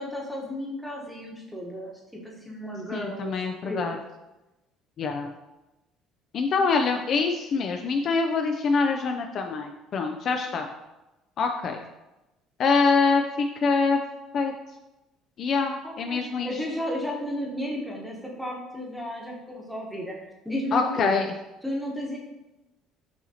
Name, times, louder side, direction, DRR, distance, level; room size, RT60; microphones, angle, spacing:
voice 1, 0.0-3.3 3.6-3.8 15.8-20.2 20.4-21.2 21.6-22.2, equal, ahead, -3 dB, 1.0 m, -33 dB
voice 2, 2.9-4.0 5.0-5.3 6.3-10.7 11.4-11.8 12.6-14.0 14.3-14.5 15.4-16.5 20.7-21.3, left 4 dB, 50° left, 4 dB, 0.4 m, -25 dB
6.2 x 2.9 x 2.8 m, 0.99 s
cardioid pair, 115°, 0 cm